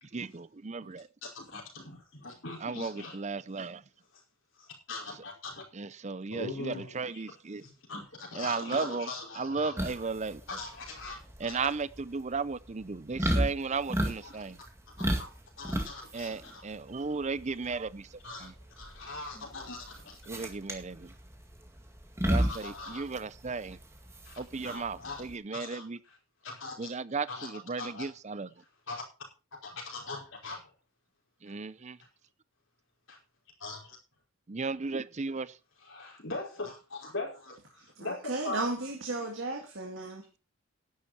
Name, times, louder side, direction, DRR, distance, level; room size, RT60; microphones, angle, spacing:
voice 1, 0.1-1.1 2.6-3.8 5.7-7.6 8.4-9.1 9.4-10.4 11.4-14.6 16.1-18.1 18.4-18.5 20.3-21.1 22.2-23.8 24.4-26.0 26.8-28.5 31.4-32.0 34.5-35.5, right 4 dB, 30° right, 18 dB, 0.5 m, -35 dB
voice 2, 1.2-3.2 4.6-5.6 6.3-7.3 7.6-10.0 10.5-11.7 14.2-14.4 14.9-15.3 15.6-16.7 18.2-20.2 22.4-23.2 24.2-24.3 24.6-25.2 25.5-26.2 26.4-26.9 27.3-28.1 28.9-29.0 29.6-30.7 33.1-33.2 33.6-34.0 35.8-38.6, left 3 dB, 60° left, -1 dB, 5.1 m, -41 dB
sound 1, 9.8-25.3, equal, 10° right, 2.1 m, -34 dB
voice 3, 37.7-40.3, right 2 dB, 55° right, 2 dB, 2.1 m, -35 dB
11.5 x 11.0 x 4.3 m, 0.32 s
head